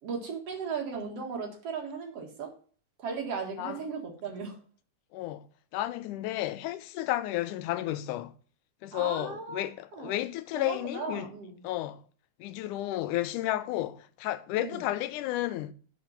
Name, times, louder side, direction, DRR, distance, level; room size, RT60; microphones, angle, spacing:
voice 1, 0.0-2.5 3.0-4.6 8.9-10.2 10.6-11.7 14.6-14.8, right 5 dB, 55° right, 2.6 m, -37 dB
voice 2, 5.1-5.5 5.7-8.3 8.8-11.3 11.6-12.0 12.4-15.7, left 15 dB, 85° left, 2.1 m, -32 dB
10.0 x 4.6 x 5.6 m
omnidirectional pair, 3.5 m